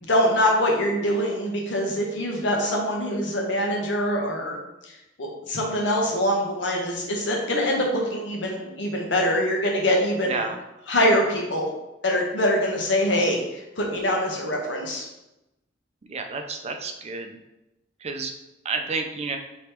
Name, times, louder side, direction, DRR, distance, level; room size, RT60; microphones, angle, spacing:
voice 1, 0.0-4.6 4.8-4.9 5.2-10.5 10.9-11.7 12.0-15.0, equal, 75° left, 0 dB, 1.0 m, -24 dB
voice 2, 10.3-10.6 16.1-17.4 18.0-18.3 18.6-19.4, right 4 dB, 35° right, 5 dB, 0.4 m, -30 dB
3.4 x 3.0 x 4.4 m, 0.94 s
head